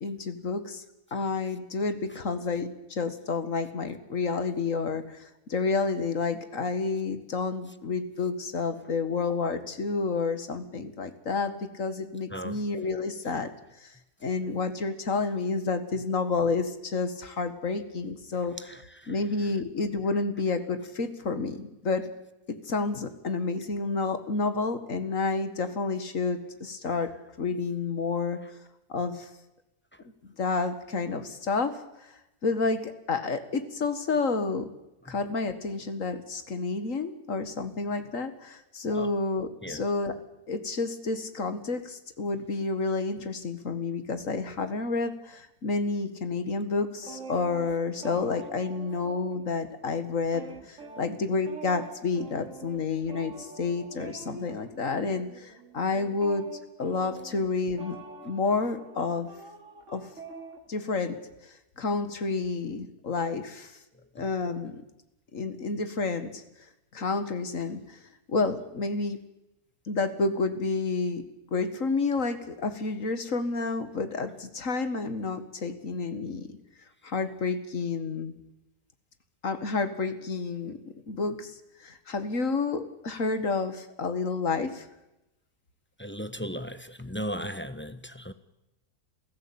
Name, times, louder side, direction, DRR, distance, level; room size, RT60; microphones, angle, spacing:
voice 1, 0.0-0.8 1.1-13.5 13.8-13.9 14.2-18.6 19.1-22.1 22.5-27.1 27.4-28.4 28.9-29.3 30.2-32.1 32.4-34.7 35.1-40.2 40.5-56.5 56.8-58.0 58.2-59.3 59.9-60.1 60.7-63.7 64.2-64.8 65.3-66.4 66.9-68.0 68.3-69.2 69.9-71.2 71.5-76.5 77.0-78.3 79.4-80.8 81.1-84.9, left 4 dB, 55° left, 10 dB, 2.2 m, -30 dB
sound 1, 47.0-49.7 50.0-60.6, right 3 dB, 50° right, 3.0 m, -45 dB
voice 2, 86.0-88.3, equal, 10° left, 11 dB, 1.0 m, -36 dB
28.0 x 16.0 x 8.8 m, 0.92 s
omnidirectional pair, 1.7 m